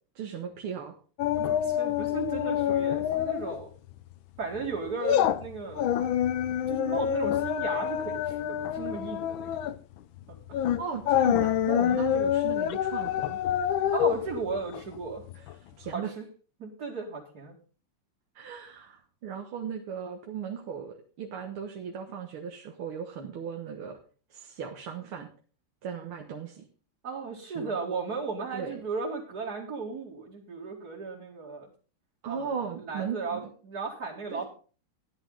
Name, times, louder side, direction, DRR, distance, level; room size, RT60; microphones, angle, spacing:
voice 1, 0.2-0.9 10.8-13.4 15.4-15.5 15.8-16.1 18.4-24.0 24.3-25.3 25.8-26.7 27.6-27.8 28.5-28.8 32.2-33.5 34.3-34.5, right 7 dB, 75° right, 3 dB, 2.2 m, -37 dB
sound 1, 1.2-3.6 3.9-4.1 4.6-15.5 15.9-16.0, left 10 dB, 70° left, 1.4 m, -27 dB
voice 2, 1.4-3.7 4.4-5.9 6.7-9.6 11.8-12.2 13.9-15.2 15.9-16.3 16.6-17.6 27.0-31.7 32.2-32.5 32.8-34.5, right 4 dB, 45° right, -3 dB, 2.8 m, -35 dB
15.0 x 10.5 x 3.9 m, 0.39 s
omnidirectional pair, 2.4 m